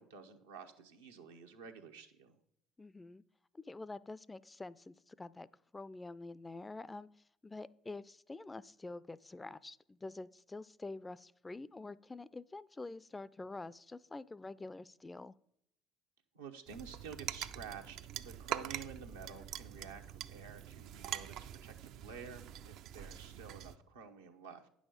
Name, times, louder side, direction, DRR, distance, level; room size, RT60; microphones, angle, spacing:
voice 1, 0.0-2.4 16.3-21.4 21.6-24.7, right 6 dB, 90° right, 3 dB, 0.9 m, -51 dB
voice 2, 2.8-3.2 3.5-5.5 5.7-7.1 7.4-15.4, left 3 dB, 20° left, 20 dB, 0.4 m, -47 dB
sound 1, 16.7-23.8, right 10 dB, 65° right, 0.4 m, -44 dB
9.5 x 6.3 x 5.1 m, 0.74 s
hypercardioid pair, 60°, 0 cm